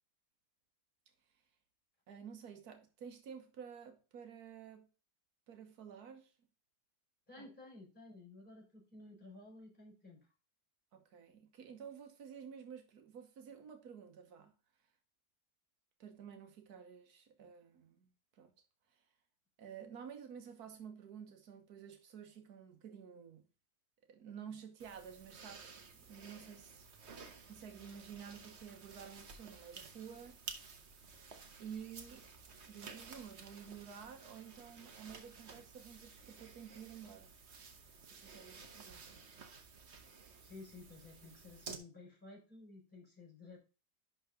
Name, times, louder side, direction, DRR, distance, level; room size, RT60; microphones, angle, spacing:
voice 1, 2.1-4.9 5.5-6.3 7.4-7.5 10.9-14.5 16.0-18.5 18.9-19.0 19.6-23.5 24.1-26.9 27.5-30.4 31.6-32.3 32.6-37.3 38.1-39.3, right 7 dB, 80° right, 1.7 m, -51 dB
voice 2, 7.3-10.3 40.4-43.6, left 3 dB, 30° left, 4.5 m, -54 dB
sound 1, 24.8-41.8, right 5 dB, 50° right, 1.2 m, -54 dB
11.0 x 4.0 x 3.6 m
omnidirectional pair, 1.6 m